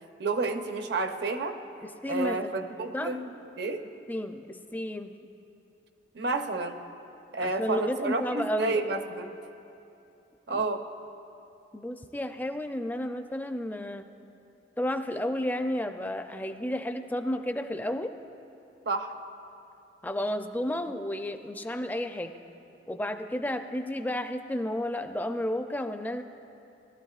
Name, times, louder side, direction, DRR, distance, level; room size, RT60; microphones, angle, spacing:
voice 1, 0.2-1.6 2.1-3.8 6.1-6.8 7.3-9.3 10.5-10.8 18.9-19.1, right 3 dB, 65° right, 6 dB, 0.7 m, -30 dB
voice 2, 1.8-3.1 4.1-5.2 7.4-8.8 10.5-10.7 11.7-14.1 14.8-18.1 20.0-22.3 22.9-26.2, left 1 dB, 10° left, 7 dB, 0.4 m, -32 dB
19.5 x 12.5 x 2.4 m, 2.8 s
head